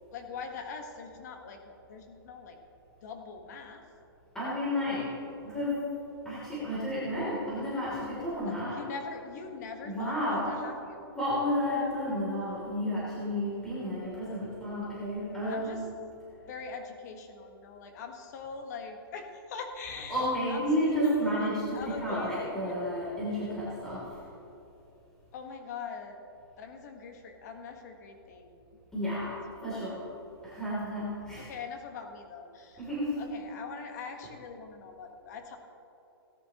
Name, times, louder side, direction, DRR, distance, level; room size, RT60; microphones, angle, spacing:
voice 1, 0.1-2.6 3.0-3.8 8.5-11.1 15.5-15.8 16.5-20.6 21.0-22.9 25.3-26.2 26.6-28.6 31.4-32.9 33.2-35.6, left 5 dB, 45° left, 5 dB, 1.4 m, -42 dB
voice 2, 4.3-5.1 5.4-5.8 6.2-8.7 9.8-10.5 11.2-15.8 20.1-24.0 28.9-29.3 29.6-30.0 30.4-31.5 32.8-33.1, equal, 5° left, -10 dB, 3.0 m, -31 dB
18.0 x 10.5 x 3.0 m, 3.0 s
hypercardioid pair, 165°, 13 cm